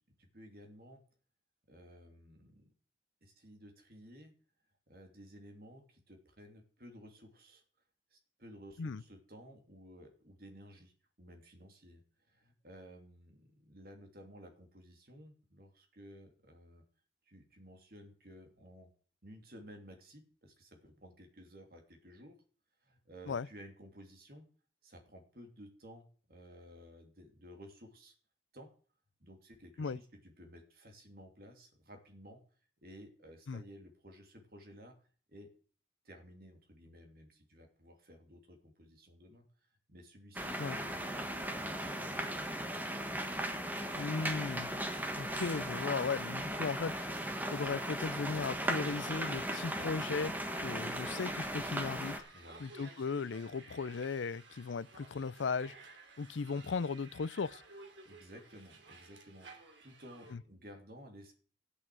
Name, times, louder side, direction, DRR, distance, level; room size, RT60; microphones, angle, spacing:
voice 1, 0.2-1.0 1.7-2.7 3.2-4.3 4.9-7.6 8.1-16.8 17.3-18.9 19.2-22.4 22.8-24.5 24.8-28.1 28.5-28.7 29.2-32.4 32.8-34.9 35.3-35.5 36.0-42.5 52.3-52.7 58.0-61.3, equal, 50° right, 2.9 m, -55 dB
sound 1, 40.4-52.2, right 1 dB, 10° right, 1.4 m, -37 dB
voice 2, 44.0-44.7 45.2-47.0 47.5-50.3 50.6-52.2 52.6-55.7 56.2-57.6, left 4 dB, 90° left, 0.5 m, -36 dB
sound 2, 47.7-60.3, right 3 dB, 85° right, 2.8 m, -56 dB
13.5 x 8.3 x 7.6 m
head